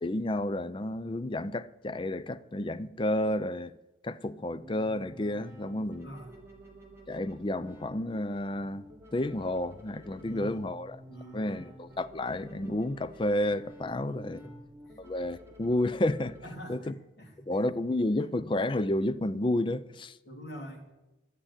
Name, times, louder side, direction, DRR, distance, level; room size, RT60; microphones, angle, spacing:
voice 1, 0.0-3.7 4.0-6.1 7.1-11.0 11.3-14.4 15.0-16.4 16.7-16.9 17.5-20.2, left 1 dB, 25° left, 0.4 m, -31 dB
sound 1, 4.5-16.5, equal, 15° right, 3.0 m, -51 dB
voice 2, 6.0-6.3 10.2-10.8 11.1-11.5 13.9-14.6 16.4-16.9 17.2-17.5 20.2-20.9, equal, 55° left, 3.0 m, -45 dB
11.0 x 8.9 x 9.8 m
head